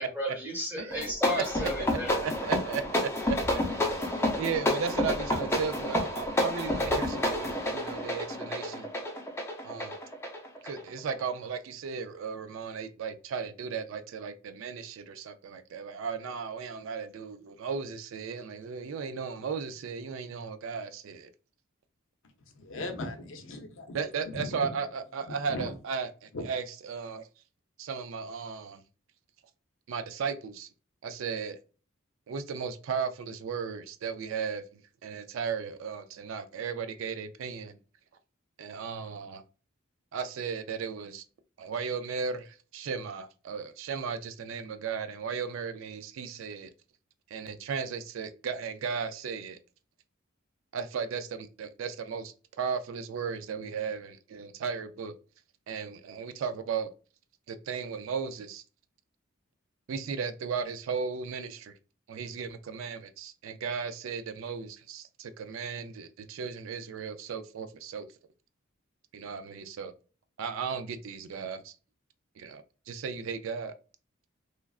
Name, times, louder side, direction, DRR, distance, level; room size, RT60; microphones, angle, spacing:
voice 1, 0.0-2.2, equal, 10° right, 1.0 m, -33 dB
sound 1, 0.9-11.2, left 1 dB, 10° left, 0.5 m, -30 dB
voice 2, 1.6-8.9 9.6-10.0 10.6-21.3 23.9-27.3 27.8-28.8 29.9-30.7 31.0-31.6 32.3-37.8 38.6-39.4 40.1-41.2 41.6-46.7 47.3-49.6 50.7-55.1 55.7-56.9 57.5-58.6 59.9-61.7 62.1-68.1 69.1-69.9 70.4-71.7 72.4-73.7, right 6 dB, 65° right, 0.3 m, -36 dB
voice 3, 22.5-24.0 24.2-24.5 25.5-25.7 26.3-26.5, left 2 dB, 65° left, 0.5 m, -38 dB
3.1 x 2.3 x 2.3 m
head